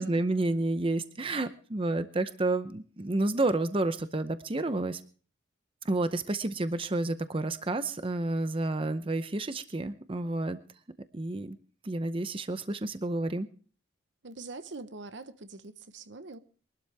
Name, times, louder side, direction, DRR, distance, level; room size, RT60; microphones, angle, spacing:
voice 1, 0.0-5.0 5.8-10.6 11.1-11.6 11.8-13.5, right 2 dB, 30° right, 0.7 m, -30 dB
voice 2, 14.2-16.4, right 3 dB, 70° right, 1.0 m, -43 dB
23.0 x 12.5 x 3.4 m
head